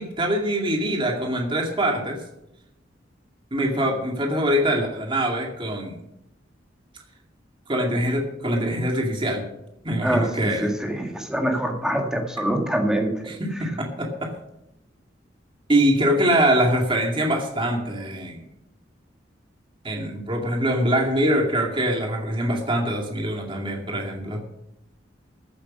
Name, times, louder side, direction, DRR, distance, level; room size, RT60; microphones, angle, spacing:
voice 1, 0.0-2.2 3.5-6.0 7.7-9.4 9.8-10.7 13.3-14.3 15.7-18.4 19.8-24.4, right 1 dB, 25° right, 1 dB, 2.3 m, -23 dB
voice 2, 10.0-13.3, right 1 dB, 5° right, 2 dB, 2.0 m, -25 dB
15.0 x 8.6 x 5.4 m, 0.84 s
head